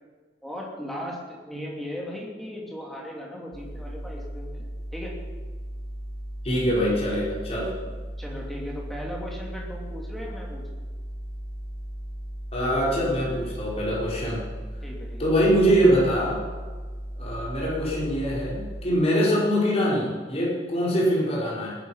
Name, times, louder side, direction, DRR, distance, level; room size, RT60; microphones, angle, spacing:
voice 1, 0.4-4.7 4.9-5.1 8.2-10.6 14.8-15.3, equal, ahead, -3 dB, 2.9 m, -37 dB
sound 1, 3.5-18.8, equal, 70° left, 4.5 m, -36 dB
voice 2, 6.4-7.7 12.5-14.4 15.2-16.4 17.2-21.8, equal, 35° left, -5 dB, 4.5 m, -23 dB
19.5 x 9.6 x 5.7 m, 1.4 s
head